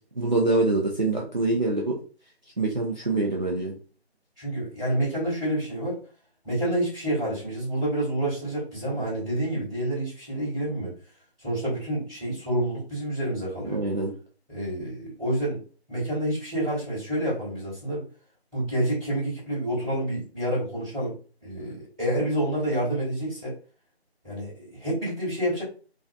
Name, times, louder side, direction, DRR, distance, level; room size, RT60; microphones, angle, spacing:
voice 1, 0.0-2.0 2.6-3.7 13.6-14.1, right 2 dB, 45° right, -2 dB, 0.4 m, -25 dB
voice 2, 4.4-6.0 6.4-10.9 11.4-13.8 14.5-15.6 15.9-18.1 18.5-21.2 21.4-23.6 24.2-25.6, right 1 dB, 5° right, -20 dB, 1.0 m, -28 dB
2.5 x 2.3 x 2.3 m, 0.38 s
figure-of-eight pair, 170°, 33 cm